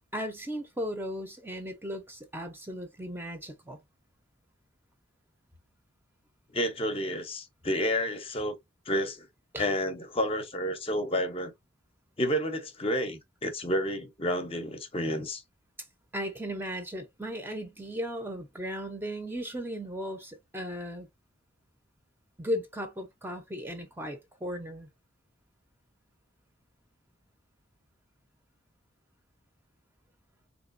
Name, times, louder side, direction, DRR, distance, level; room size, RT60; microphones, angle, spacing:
voice 1, 0.1-3.8 9.5-9.7 16.1-21.1 22.4-24.9, equal, 10° right, 0.6 m, -36 dB
voice 2, 6.5-8.6 8.9-9.3 9.6-11.5 12.2-15.4, equal, 30° left, 0.7 m, -30 dB
3.8 x 2.9 x 2.5 m
head